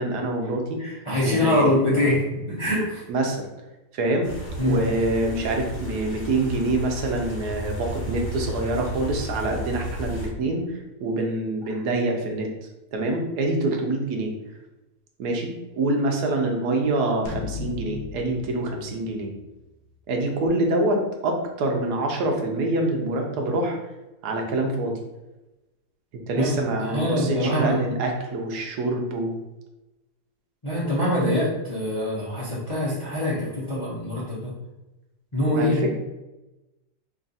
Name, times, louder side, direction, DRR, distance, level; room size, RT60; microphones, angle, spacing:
voice 1, 0.0-0.8 1.2-2.0 3.1-3.4 3.9-4.3 4.6-12.5 12.9-14.3 15.2-19.3 20.1-23.8 24.2-25.0 26.3-29.3 35.5-36.0, right 2 dB, 85° right, 2 dB, 1.2 m, -25 dB
voice 2, 0.8-3.0 4.6-4.8 26.4-27.8 30.6-34.5 35.3-35.9, left 1 dB, 30° left, -8 dB, 0.6 m, -24 dB
sound 1, 4.2-10.3, equal, 60° left, 1.2 m, -33 dB
sound 2, 17.3-19.8, left 5 dB, 80° left, 0.5 m, -36 dB
3.2 x 2.4 x 4.0 m, 1.0 s
omnidirectional pair, 1.7 m